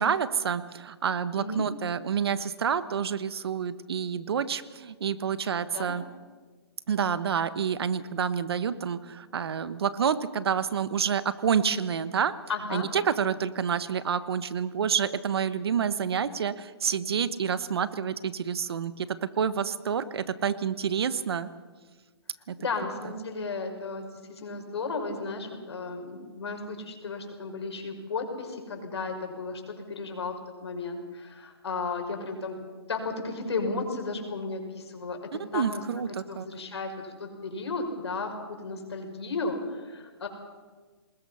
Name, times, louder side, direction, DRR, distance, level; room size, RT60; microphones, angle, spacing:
voice 1, 0.0-6.0 6.9-12.3 12.7-21.5 22.5-22.6 35.5-36.5, right 7 dB, 65° right, 14 dB, 1.2 m, -28 dB
voice 2, 12.5-12.9 22.6-32.6 32.9-35.8 36.3-40.3, left 3 dB, 75° left, 4 dB, 5.7 m, -34 dB
26.5 x 20.5 x 5.7 m, 1.4 s
hypercardioid pair, 155°, 14 cm